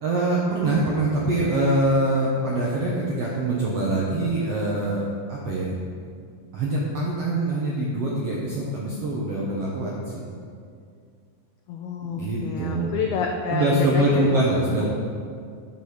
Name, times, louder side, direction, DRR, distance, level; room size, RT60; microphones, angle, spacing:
voice 1, 0.0-5.0 5.3-5.8 6.5-10.2 12.1-12.9 13.5-14.9, right 2 dB, 75° right, -4 dB, 1.4 m, -24 dB
voice 2, 11.7-14.4, left 6 dB, 85° left, 2 dB, 1.7 m, -28 dB
10.0 x 5.5 x 6.5 m, 2.2 s
omnidirectional pair, 4.2 m